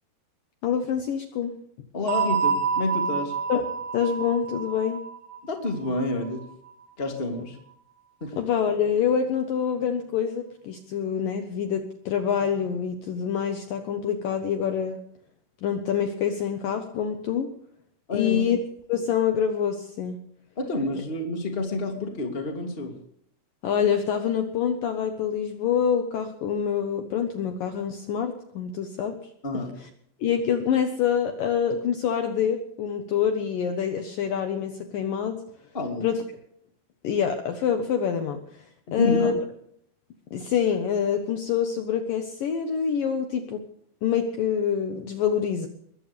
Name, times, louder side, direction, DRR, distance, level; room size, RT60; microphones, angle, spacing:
voice 1, 0.6-1.5 3.5-3.6 3.9-5.0 8.4-15.0 15.6-17.5 18.1-18.6 18.9-20.2 23.6-29.2 29.8-29.9 30.2-35.4 36.0-36.2 37.0-38.6 38.9-39.4 40.3-43.6 44.0-45.7, left 8 dB, 65° left, 6 dB, 2.4 m, -26 dB
voice 2, 1.9-3.4 5.4-6.4 7.0-7.6 8.2-8.4 18.1-18.4 20.6-22.9 29.4-29.7 35.7-36.1 38.9-39.3, left 2 dB, 15° left, 2 dB, 2.2 m, -29 dB
sound 1, 2.1-6.7, right 6 dB, 70° right, 6.4 m, -28 dB
21.5 x 15.5 x 3.5 m, 0.67 s
omnidirectional pair, 5.0 m